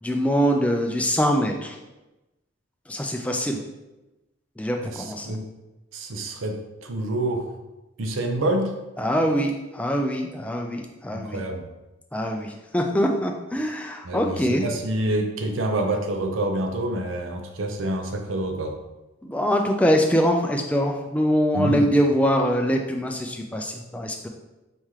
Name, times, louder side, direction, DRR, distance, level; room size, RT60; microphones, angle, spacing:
voice 1, 0.0-1.8 2.9-3.6 4.6-5.4 9.0-11.4 12.1-14.7 19.2-24.3, equal, 5° left, 2 dB, 0.3 m, -23 dB
voice 2, 4.8-5.4 5.9-7.6 8.0-8.7 11.1-11.6 14.0-18.7 21.5-21.9, right 1 dB, 90° right, 4 dB, 0.6 m, -27 dB
4.2 x 3.2 x 3.6 m, 1.0 s
head